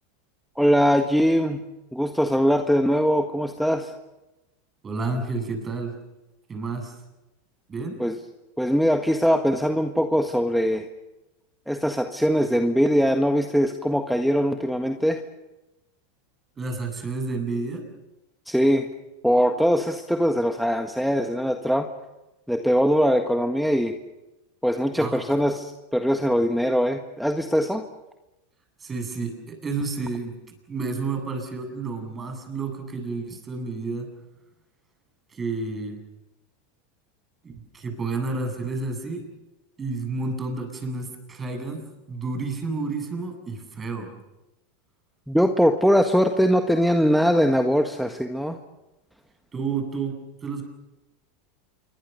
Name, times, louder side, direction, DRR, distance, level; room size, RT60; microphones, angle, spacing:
voice 1, 0.6-1.6 1.9-3.9 8.0-8.2 8.6-10.8 11.7-15.2 18.5-18.9 19.2-21.9 22.5-24.0 24.6-27.8 45.3-48.6, equal, ahead, 6 dB, 1.6 m, -21 dB
voice 2, 4.8-5.9 6.5-7.0 7.7-8.0 16.6-17.9 24.9-25.2 28.8-30.4 30.7-34.1 35.3-36.0 37.4-39.3 39.8-44.1 49.5-50.6, right 3 dB, 25° right, 4 dB, 7.8 m, -30 dB
27.5 x 24.0 x 6.9 m, 0.99 s
hypercardioid pair, 95°, 0 cm